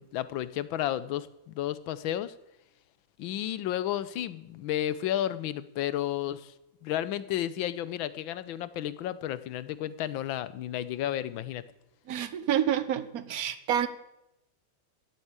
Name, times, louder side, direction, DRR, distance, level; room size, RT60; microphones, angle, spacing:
voice 1, 0.0-2.3 3.2-6.5 6.8-11.6, left 12 dB, 90° left, 15 dB, 1.5 m, -32 dB
voice 2, 12.1-13.9, right 10 dB, 55° right, 12 dB, 1.3 m, -28 dB
14.5 x 8.1 x 8.9 m, 0.87 s
omnidirectional pair, 2.1 m